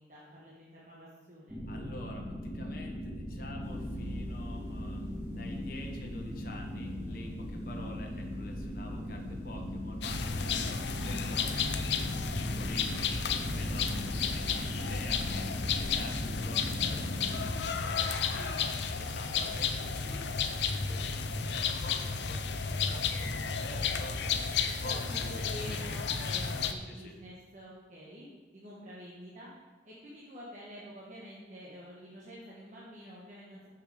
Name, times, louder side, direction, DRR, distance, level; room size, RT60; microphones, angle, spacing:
voice 1, 0.0-1.6 24.6-29.5 29.8-33.7, equal, 45° right, -6 dB, 1.3 m, -48 dB
sound 1, 1.5-17.5, equal, 15° right, 2.4 m, -39 dB
voice 2, 1.7-11.5 12.4-20.3 20.7-24.4 24.8-25.8 26.9-27.1, left 1 dB, 50° left, 1 dB, 1.0 m, -48 dB
sound 2, 3.6-16.5, equal, 15° left, 1.0 m, -48 dB
sound 3, 10.0-26.7, left 5 dB, 75° left, 0.6 m, -32 dB
6.7 x 6.5 x 5.0 m, 1.3 s
head